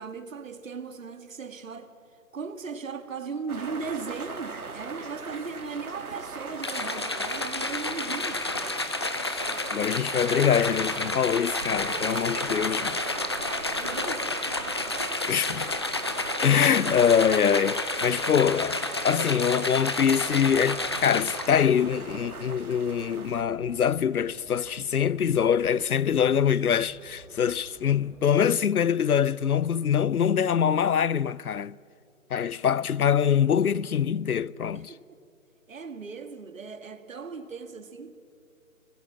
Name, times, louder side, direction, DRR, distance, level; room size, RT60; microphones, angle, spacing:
voice 1, 0.0-1.9 2.3-8.4 11.8-12.9 13.7-14.6 34.7-35.2 35.7-38.2, right 5 dB, 65° right, 2.0 m, -38 dB
sound 1, 3.5-23.4, right 4 dB, 85° right, 2.5 m, -40 dB
sound 2, 6.6-21.7, left 2 dB, 20° left, 0.6 m, -30 dB
voice 2, 9.7-12.9 15.3-15.7 16.4-31.8 32.3-34.9, left 8 dB, 90° left, 0.7 m, -24 dB
sound 3, 20.3-28.2, right 2 dB, 5° right, 2.4 m, -52 dB
25.0 x 20.5 x 7.5 m
hypercardioid pair, 160°, 43 cm